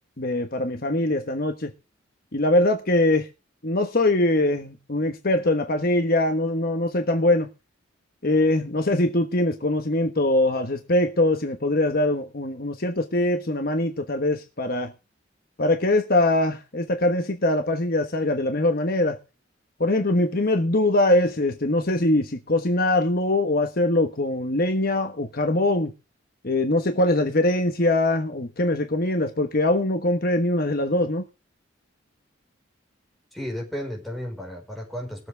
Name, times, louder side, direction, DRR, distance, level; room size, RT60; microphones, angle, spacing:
voice 1, 0.2-1.7 2.3-3.3 3.6-7.5 8.2-14.9 15.6-19.2 19.8-25.9 26.4-31.2, left 1 dB, 50° left, 1.2 m, -22 dB
voice 2, 33.3-35.3, equal, ahead, 4.7 m, -33 dB
20.5 x 7.7 x 3.4 m
head